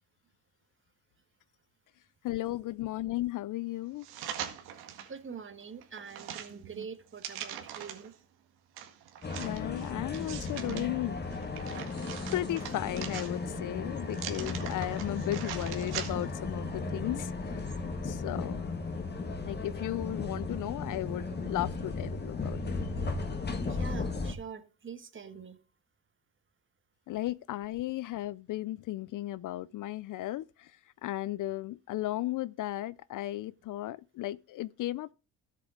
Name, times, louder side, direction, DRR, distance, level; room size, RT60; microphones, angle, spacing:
voice 1, 2.2-4.1 9.4-11.2 12.3-17.7 18.0-18.7 19.4-22.8 27.1-35.1, left 15 dB, 55° left, 0.5 m, -35 dB
sound 1, 4.0-5.1 5.6-8.1 8.8-10.8 11.3-13.6 14.1-16.4 16.8-16.9, right 10 dB, 85° right, 1.9 m, -42 dB
voice 2, 4.7-8.1 23.6-25.6, right 6 dB, 30° right, 1.5 m, -45 dB
sound 2, 9.2-24.3, left 3 dB, 25° left, 1.9 m, -35 dB
13.5 x 7.6 x 3.8 m
cardioid pair, 90°, 37 cm